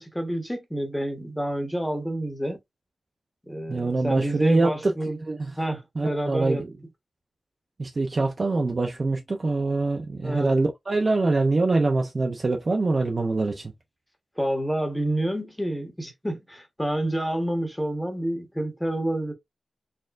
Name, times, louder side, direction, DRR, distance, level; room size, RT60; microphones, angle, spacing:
voice 1, 0.0-2.6 3.5-5.2 5.6-6.6 10.2-10.5 14.4-19.3, right 1 dB, 5° left, 1.2 m, -28 dB
voice 2, 3.7-5.5 6.0-6.7 7.8-13.7, right 3 dB, 35° right, 0.6 m, -24 dB
4.3 x 3.7 x 2.5 m
wide cardioid pair, 145°, 0 cm